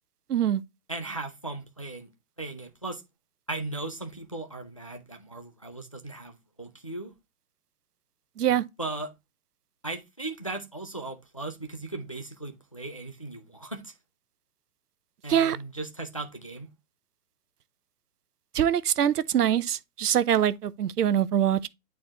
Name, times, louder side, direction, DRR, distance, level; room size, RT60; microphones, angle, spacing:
voice 1, 0.3-0.6 8.4-8.6 15.3-15.6 18.5-21.7, right 10 dB, 80° right, 0.7 m, -24 dB
voice 2, 0.9-2.1 2.4-3.0 3.5-7.1 8.8-9.1 9.8-13.9 15.2-16.7, right 2 dB, 25° left, 0.3 m, -37 dB
9.5 x 4.2 x 2.7 m
hypercardioid pair, 145°, 46 cm